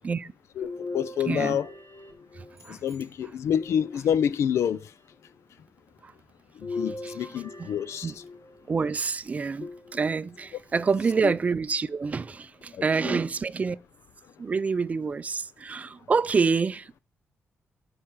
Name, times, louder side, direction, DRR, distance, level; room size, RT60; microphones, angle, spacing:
voice 1, 0.6-1.7 2.7-4.8 6.6-8.1 11.2-11.3 13.0-13.2, left 9 dB, 85° left, 0.5 m, -27 dB
sound 1, 0.6-2.9 3.6-4.6 6.6-8.7 9.6-10.5 11.1-11.2 12.6-12.7, left 3 dB, 65° left, 3.4 m, -39 dB
voice 2, 1.2-1.6 2.3-2.8 6.0-6.1 6.7-6.8 7.0-7.3 7.6-7.7 8.0-8.1 8.7-13.8 14.4-17.0, right 5 dB, 30° right, 0.4 m, -27 dB
sound 2, 2.5-3.6, left 2 dB, 5° left, 3.0 m, -59 dB
12.0 x 4.9 x 4.5 m
wide cardioid pair, 140°, 5 cm